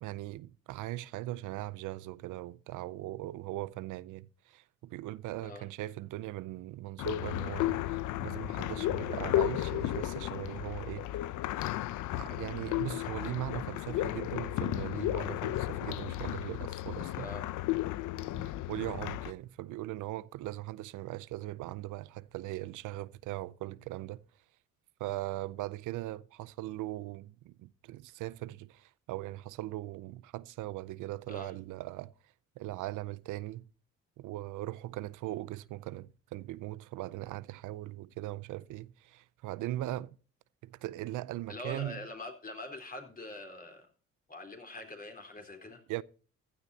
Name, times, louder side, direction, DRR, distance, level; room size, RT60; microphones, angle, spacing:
voice 1, 0.0-11.1 11.5-11.8 12.2-17.3 18.7-24.2 25.0-32.1 32.6-33.7 34.2-40.1 40.6-42.0 45.9-46.0, right 16 dB, 85° right, 0.6 m, -39 dB
sound 1, 7.0-19.3, left 15 dB, 85° left, 0.6 m, -34 dB
voice 2, 41.5-43.9 44.3-45.8, left 2 dB, 30° left, 4.0 m, -44 dB
15.5 x 12.0 x 2.8 m
cardioid pair, 90°, 30 cm